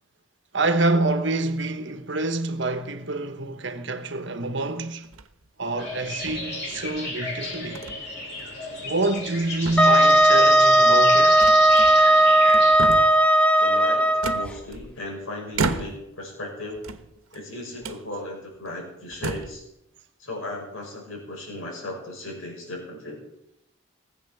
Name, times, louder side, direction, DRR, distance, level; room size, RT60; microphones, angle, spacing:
voice 1, 0.5-5.1 5.6-7.8 8.8-11.4, right 2 dB, 60° right, 1.2 m, -26 dB
sound 1, 5.0-5.5 6.3-7.0 7.7-8.0 8.4-8.5 9.0-9.4 9.6-10.4 11.4-12.1 12.5-13.2 14.2-15.0 15.5-16.2 16.7-17.4 17.8-18.0 18.6-18.7 19.1-19.6, right 3 dB, 90° right, 1.1 m, -32 dB
sound 2, 5.8-12.8, left 2 dB, 50° left, 4.4 m, -33 dB
Wind instrument woodwind instrument, 9.8-14.5, right 1 dB, 5° left, 0.6 m, -16 dB
voice 2, 13.6-16.8 17.3-19.6 20.2-23.2, left 1 dB, 75° left, 6.1 m, -36 dB
19.0 x 8.3 x 7.0 m
head